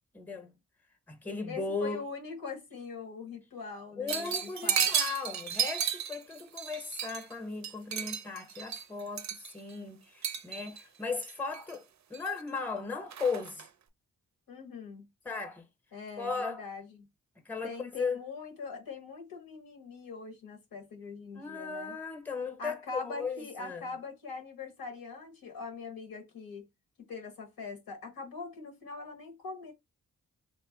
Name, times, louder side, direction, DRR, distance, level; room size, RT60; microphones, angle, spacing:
voice 1, 0.1-0.5 1.1-2.0 4.0-11.8 12.1-13.7 15.3-15.6 16.2-16.6 17.5-18.2 21.3-23.8, left 4 dB, 5° left, 0.7 m, -36 dB
voice 2, 1.5-4.9 14.5-15.1 15.9-17.1 17.6-22.0 22.6-26.6 27.0-29.7, left 4 dB, 85° left, 1.0 m, -42 dB
sound 1, 4.1-7.3 7.6-9.7 10.2-10.8 11.2-11.7 12.1-12.7 13.1-13.7, right 8 dB, 55° right, 0.4 m, -33 dB
3.0 x 2.1 x 3.7 m
cardioid pair, 55°, 34 cm